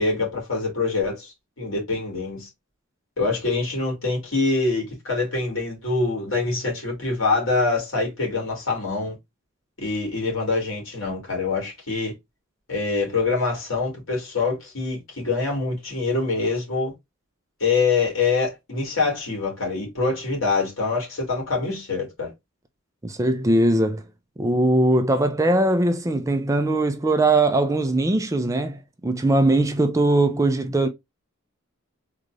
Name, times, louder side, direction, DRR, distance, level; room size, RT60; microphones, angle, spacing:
voice 1, 0.0-2.5 3.2-9.1 9.8-12.1 12.7-16.9 17.6-22.3, left 3 dB, 70° left, 2.3 m, -25 dB
voice 2, 23.0-24.0 24.4-30.9, right 2 dB, 15° right, 0.4 m, -20 dB
3.7 x 2.4 x 3.1 m
head